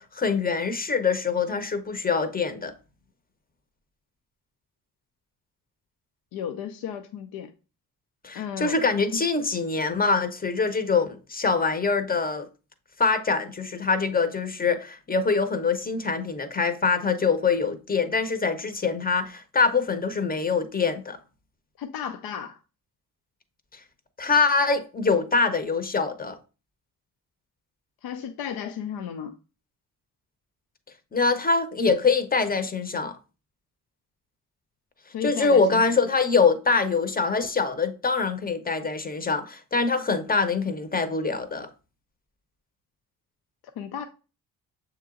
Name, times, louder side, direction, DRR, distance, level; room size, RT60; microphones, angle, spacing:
voice 1, 0.0-2.7 8.2-12.5 13.0-21.2 24.2-26.4 31.1-33.2 35.2-41.7, left 4 dB, 25° left, 0.7 m, -24 dB
voice 2, 6.3-7.5 8.3-8.8 21.8-22.6 28.0-29.4 35.1-35.8 43.8-44.1, left 8 dB, 75° left, 0.5 m, -34 dB
6.6 x 2.9 x 2.4 m
supercardioid pair, 60°, 38 cm